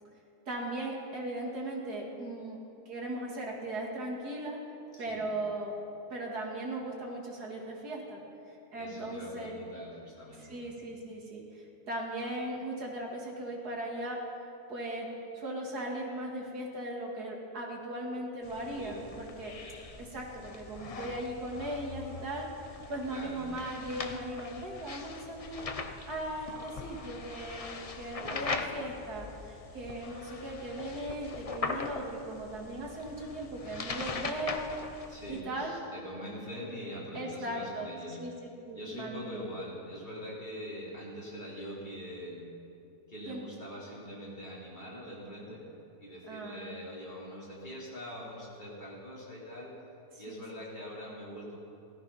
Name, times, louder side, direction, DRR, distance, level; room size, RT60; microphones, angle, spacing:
voice 1, 0.5-2.6 2.9-4.6 5.0-5.8 6.1-9.5 10.4-14.2 14.7-15.1 15.3-19.5 20.0-34.7 35.3-35.8 37.1-38.3 38.7-39.5 43.3-43.4 46.3-46.8 50.1-50.4, right 1 dB, 70° right, -1 dB, 2.7 m, -38 dB
voice 2, 4.9-5.3 8.7-10.6 18.8-19.1 23.1-23.6 28.2-28.8 35.1-38.2 38.7-42.5 43.1-45.7 46.0-49.8 50.2-51.6, equal, 30° left, -7 dB, 3.9 m, -43 dB
sound 1, 18.4-35.4, left 4 dB, 65° left, 0.3 m, -41 dB
16.0 x 13.5 x 5.7 m, 2.7 s
omnidirectional pair, 1.7 m